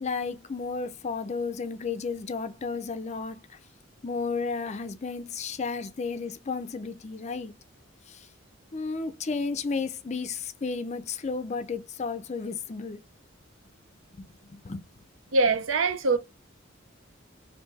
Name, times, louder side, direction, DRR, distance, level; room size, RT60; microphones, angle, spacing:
voice 1, 0.0-3.4 4.0-7.5 8.1-8.3 8.7-13.0 14.1-14.8, left 4 dB, 35° left, 0.4 m, -33 dB
voice 2, 15.3-16.2, right 3 dB, 85° right, 0.6 m, -23 dB
3.3 x 2.6 x 3.2 m
head